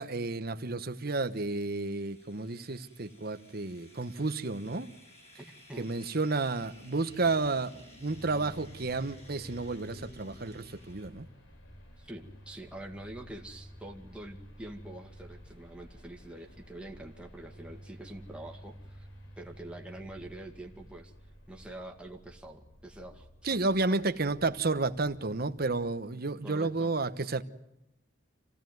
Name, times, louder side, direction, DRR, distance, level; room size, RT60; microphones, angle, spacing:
voice 1, 0.0-4.9 5.8-7.7 8.0-11.3 23.4-27.4, right 3 dB, 50° right, 1.1 m, -31 dB
sound 1, 0.9-11.1, equal, 35° left, 6.6 m, -56 dB
voice 2, 5.4-5.9 12.0-19.1 19.4-21.1 21.5-24.0 26.4-26.9, right 1 dB, 5° right, 2.1 m, -46 dB
sound 2, 8.1-26.0, equal, 85° left, 4.0 m, -52 dB
26.5 x 16.5 x 9.3 m
head